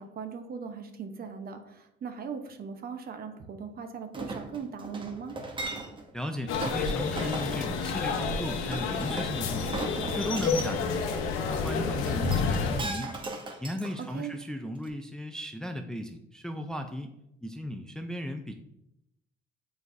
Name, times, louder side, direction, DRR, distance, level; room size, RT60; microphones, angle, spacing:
voice 1, 0.0-5.4 14.0-14.3, right 6 dB, 45° right, 6 dB, 0.9 m, -39 dB
Chink clink, 4.1-6.1 6.6-6.8 7.2-7.5 8.7-10.7 12.1-14.4 14.9-15.0, right 2 dB, 25° right, 0.9 m, -38 dB
voice 2, 6.1-9.8 10.2-11.2 11.5-13.1 13.6-17.1 17.4-18.6, equal, 5° left, 5 dB, 0.4 m, -36 dB
sound 1, 6.5-12.8, left 5 dB, 80° left, 0.9 m, -29 dB
7.6 x 4.7 x 2.6 m, 0.83 s
cardioid pair, 105°, 21 cm